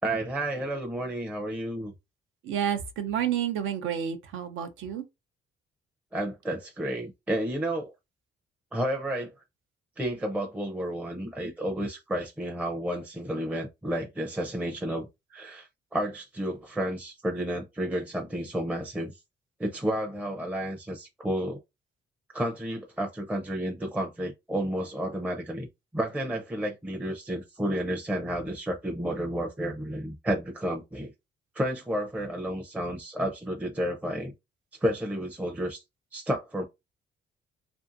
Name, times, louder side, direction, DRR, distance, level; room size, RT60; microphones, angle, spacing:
voice 1, 0.0-1.9 6.1-7.9 8.7-9.3 10.0-19.1 19.6-21.6 22.3-25.7 25.9-31.1 31.6-34.3 34.8-35.8 36.1-36.6, right 1 dB, 5° right, 0.5 m, -31 dB
voice 2, 2.4-5.0, right 9 dB, 80° right, 0.6 m, -30 dB
2.6 x 2.5 x 2.5 m
cardioid pair, 90°, 20 cm